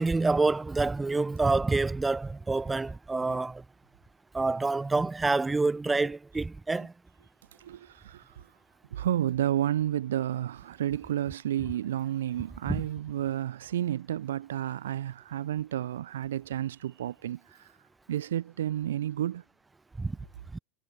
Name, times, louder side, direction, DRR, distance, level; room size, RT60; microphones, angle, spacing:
voice 1, 0.0-3.6 4.3-6.9 12.7-12.8 20.0-20.1 20.5-20.6, right 3 dB, 10° right, 1.0 m, -27 dB
voice 2, 7.6-8.4 8.9-17.7 18.1-19.4, right 11 dB, 65° right, 0.5 m, -31 dB
figure-of-eight pair, 85°, 0 cm